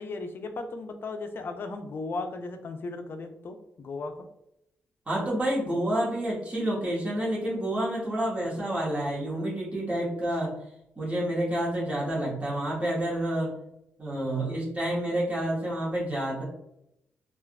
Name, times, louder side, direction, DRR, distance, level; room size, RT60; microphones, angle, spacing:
voice 1, 0.0-4.3 8.4-8.7 14.3-14.6, left 3 dB, 50° left, 7 dB, 0.5 m, -36 dB
voice 2, 5.1-10.6 11.0-13.6 14.0-16.4, right 1 dB, 30° right, -6 dB, 1.3 m, -29 dB
3.4 x 2.4 x 2.3 m, 0.81 s
cardioid pair, 90°, 5 cm